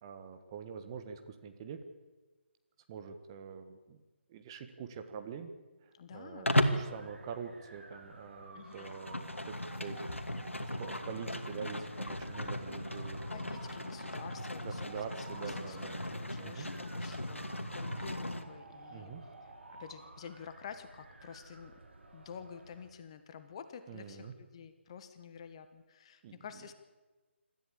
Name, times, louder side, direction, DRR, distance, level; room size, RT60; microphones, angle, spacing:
voice 1, 0.0-1.8 2.9-4.0 4.3-5.5 5.8-13.4 14.6-16.0 16.4-16.7 18.9-19.3 23.9-24.3 26.2-26.4, right 6 dB, 20° right, 7 dB, 1.5 m, -45 dB
voice 2, 5.9-6.6 8.5-8.9 13.3-15.0 15.4-15.8 16.0-19.1 19.8-21.8 22.1-26.7, left 7 dB, 25° left, 10 dB, 1.3 m, -49 dB
Livestock farm animals working animals, 6.5-6.9 8.6-18.4, left 1 dB, 80° left, 2.3 m, -36 dB
sound 1, 6.5-22.9, right 2 dB, 65° right, 3.9 m, -53 dB
26.0 x 14.0 x 8.8 m, 1.2 s
figure-of-eight pair, 150°, 7 cm